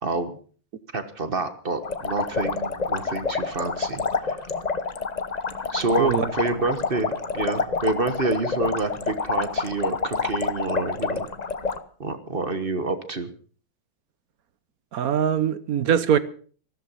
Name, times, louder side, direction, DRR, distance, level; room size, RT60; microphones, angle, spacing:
voice 1, 0.0-0.4 0.9-4.4 5.7-11.3 12.0-13.3, right 3 dB, 30° right, 1.3 m, -28 dB
sound 1, 1.8-11.8, left 4 dB, 35° left, 0.7 m, -28 dB
voice 2, 14.9-16.2, right 8 dB, 55° right, 1.2 m, -22 dB
14.5 x 13.5 x 5.6 m
omnidirectional pair, 2.1 m